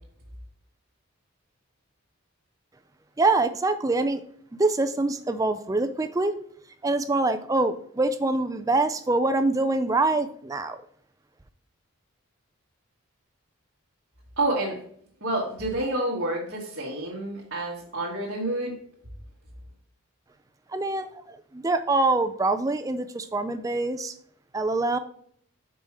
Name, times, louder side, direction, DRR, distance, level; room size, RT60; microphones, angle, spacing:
voice 1, 3.2-4.2 4.5-6.3 6.8-10.8 20.7-24.1 24.5-25.0, right 2 dB, 15° right, 9 dB, 0.3 m, -25 dB
voice 2, 14.4-14.8 15.2-18.8, right 1 dB, 55° right, -5 dB, 1.3 m, -28 dB
5.3 x 4.8 x 4.3 m, 0.62 s
head